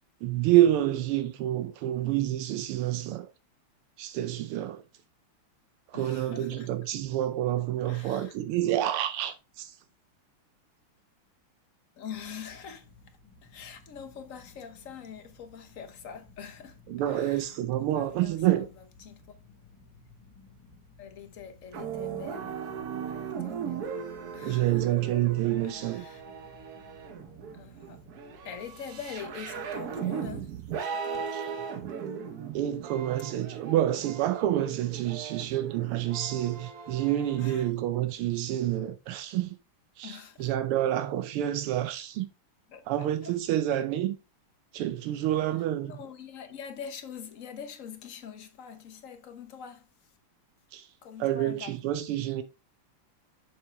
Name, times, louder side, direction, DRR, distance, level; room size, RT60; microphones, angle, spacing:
voice 1, 0.2-3.3 4.0-4.8 5.9-9.8 16.9-18.7 24.4-26.1 31.3-31.4 32.4-39.6 40.0-42.3 42.9-44.2 44.7-46.0 50.7-50.9 51.2-52.4, right 13 dB, 85° right, 1.5 m, -28 dB
voice 2, 5.9-6.7 7.8-8.8 12.0-18.7 19.0-19.2 19.8-20.0 21.0-22.7 23.1-23.9 24.3-24.9 25.6-26.2 27.5-28.0 28.4-30.5 30.8-31.8 37.3-37.8 40.0-40.5 42.7-43.3 45.8-50.2 51.0-51.8 52.1-52.3, left 7 dB, 50° left, 1.1 m, -44 dB
sound 1, 12.1-30.4, left 2 dB, 10° left, 1.9 m, -57 dB
sound 2, 21.7-37.7, right 7 dB, 55° right, 1.2 m, -38 dB
6.8 x 5.9 x 3.4 m
omnidirectional pair, 2.4 m